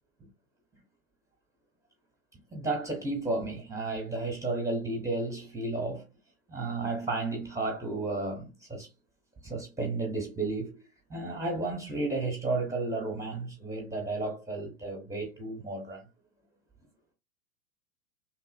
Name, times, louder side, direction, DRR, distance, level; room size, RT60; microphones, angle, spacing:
voice 1, 2.5-6.0 6.5-8.9 9.4-10.8 11.1-16.1, right 2 dB, 5° right, 0.7 m, -33 dB
2.9 x 2.6 x 2.5 m
figure-of-eight pair, 95°, 43 cm